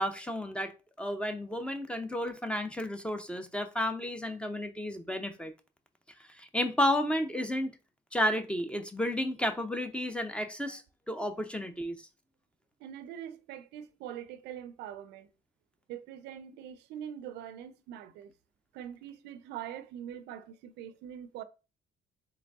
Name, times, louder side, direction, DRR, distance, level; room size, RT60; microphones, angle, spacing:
voice 1, 0.0-5.5 6.3-7.7 8.1-10.8 11.1-12.0, left 1 dB, 5° left, 0.6 m, -32 dB
voice 2, 12.8-15.3 15.9-18.3 18.7-21.4, right 10 dB, 85° right, 0.5 m, -43 dB
3.9 x 3.2 x 3.5 m
cardioid pair, 110°, 17 cm